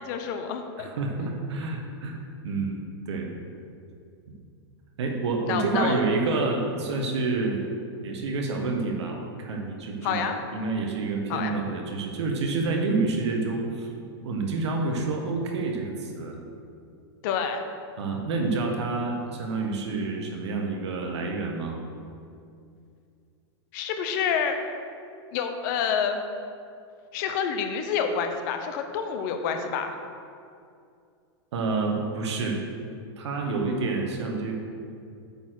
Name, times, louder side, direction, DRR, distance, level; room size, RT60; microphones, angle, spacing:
voice 1, 0.0-0.9 5.4-6.0 6.3-6.5 10.0-10.4 11.3-11.6 17.2-17.6 23.7-24.6 25.3-26.2 27.1-29.9, left 7 dB, 45° left, 6 dB, 0.8 m, -28 dB
voice 2, 0.8-2.2 2.4-2.8 3.1-3.3 5.0-7.6 8.0-13.9 14.2-16.4 18.0-21.8 31.5-32.6 33.2-34.5, right 3 dB, 80° right, 1 dB, 1.5 m, -28 dB
8.8 x 4.2 x 6.5 m, 2.4 s
supercardioid pair, 160°, 14 cm